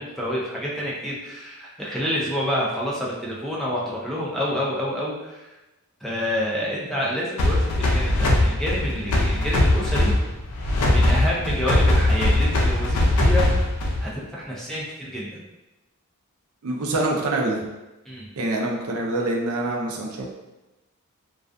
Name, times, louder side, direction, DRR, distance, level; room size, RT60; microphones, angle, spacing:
voice 1, 0.0-5.5 6.0-10.2 10.9-13.5 14.0-15.4 18.1-18.3, equal, ahead, -6 dB, 0.4 m, -28 dB
sound 1, 7.4-14.2, left 1 dB, 85° left, 0.4 m, -20 dB
voice 2, 16.6-17.7 18.4-20.2, right 2 dB, 75° right, 0 dB, 0.4 m, -25 dB
2.3 x 2.3 x 2.4 m, 1.0 s
head